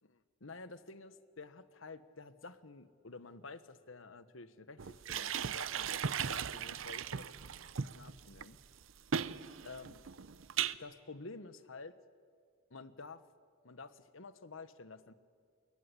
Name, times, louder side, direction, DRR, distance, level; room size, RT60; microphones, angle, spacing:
voice 1, 0.0-7.3 7.7-8.6 9.6-10.0 10.7-12.0 12.7-13.2 13.6-15.1, left 3 dB, 80° left, 13 dB, 1.3 m, -50 dB
sound 1, 4.8-10.7, right 7 dB, 85° right, 0.7 m, -38 dB
28.0 x 21.5 x 10.0 m, 2.1 s
head